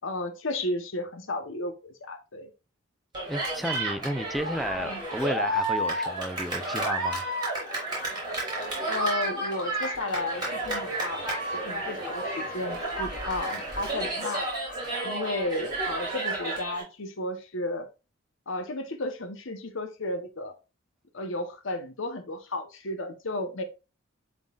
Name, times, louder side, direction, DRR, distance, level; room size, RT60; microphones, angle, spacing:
voice 1, 0.0-2.5 4.8-5.0 8.9-11.2 11.6-14.4 15.0-17.9 18.5-20.6 21.1-23.6, left 1 dB, 65° left, 1.0 m, -33 dB
Cheering, 3.1-16.8, right 1 dB, 20° right, 4.0 m, -31 dB
voice 2, 3.3-7.3, equal, ahead, 0.6 m, -32 dB
11.0 x 3.9 x 2.4 m
head